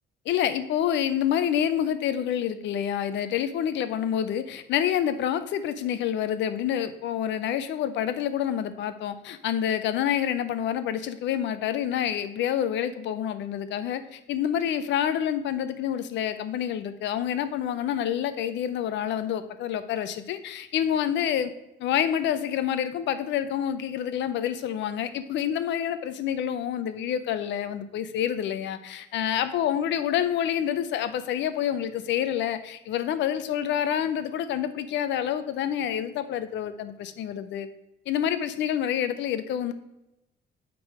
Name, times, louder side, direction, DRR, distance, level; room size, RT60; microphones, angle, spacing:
voice 1, 0.3-21.5 21.8-37.7 38.1-39.7, left 9 dB, 80° left, 11 dB, 0.7 m, -28 dB
8.2 x 3.8 x 4.8 m, 0.91 s
cardioid pair, 150°, 18 cm